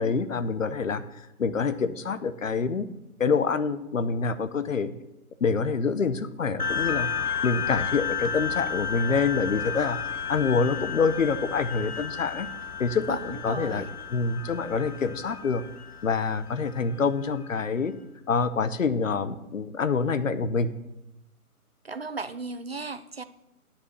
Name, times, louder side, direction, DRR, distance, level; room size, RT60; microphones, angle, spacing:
voice 1, 0.0-2.9 3.2-4.9 5.4-7.1 7.4-10.0 10.3-12.5 12.8-13.8 14.1-15.6 16.0-17.9 18.3-20.7, left 5 dB, 60° left, 13 dB, 0.9 m, -26 dB
sound 1, 6.6-17.5, left 6 dB, 90° left, 1.2 m, -33 dB
voice 2, 13.1-13.9 21.8-23.2, right 4 dB, 45° right, 13 dB, 0.5 m, -36 dB
10.0 x 5.8 x 6.4 m, 0.90 s
figure-of-eight pair, 150°, 44 cm